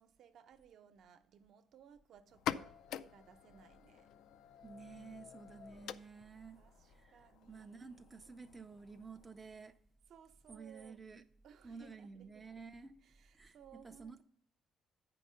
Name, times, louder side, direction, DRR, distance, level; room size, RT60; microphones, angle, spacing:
voice 1, 0.0-4.1 6.6-8.0 10.1-11.0 11.4-12.6 13.0-14.2, right 8 dB, 60° right, 0.7 m, -61 dB
sound 1, 2.3-9.7, left 10 dB, 70° left, 0.3 m, -47 dB
voice 2, 4.6-6.6 6.9-9.7 10.5-11.2 11.6-13.0 13.3-14.2, right 4 dB, 15° right, 0.4 m, -52 dB
8.4 x 5.3 x 5.6 m
cardioid pair, 145°, 0 cm